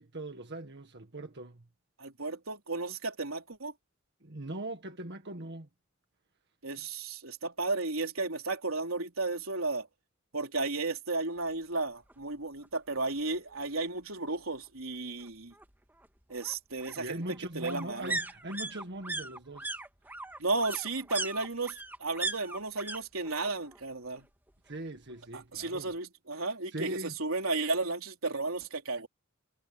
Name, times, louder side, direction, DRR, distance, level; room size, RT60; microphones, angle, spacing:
voice 1, 0.0-1.7 4.2-5.7 17.0-19.8 24.6-25.9 26.3-27.1 28.9-29.0, right 1 dB, 55° right, 1.8 m, -40 dB
voice 2, 2.0-3.7 6.6-9.9 10.3-15.5 16.3-17.2 17.6-18.2 20.4-24.3 25.3-26.9 27.2-29.1, right 3 dB, 85° right, 3.7 m, -34 dB
sound 1, 12.1-12.2 12.6-12.7 12.9-13.9 15.2-23.0 23.2-23.8 24.1-25.1 25.4-25.5, right 2 dB, 10° right, 2.0 m, -39 dB
head